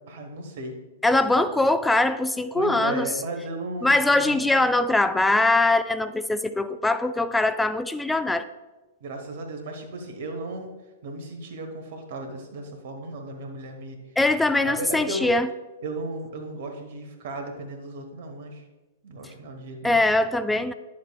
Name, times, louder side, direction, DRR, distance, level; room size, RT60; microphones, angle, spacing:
voice 1, 0.1-0.8 2.5-4.6 9.0-10.7 11.0-14.0 14.6-15.3 15.8-18.6 19.0-20.0, right 2 dB, 55° right, 5 dB, 1.3 m, -35 dB
voice 2, 1.0-3.1 3.8-8.5 14.2-15.5 19.8-20.7, left 2 dB, 5° left, 11 dB, 0.3 m, -22 dB
9.9 x 7.4 x 2.3 m, 1.1 s
figure-of-eight pair, 110°, 0 cm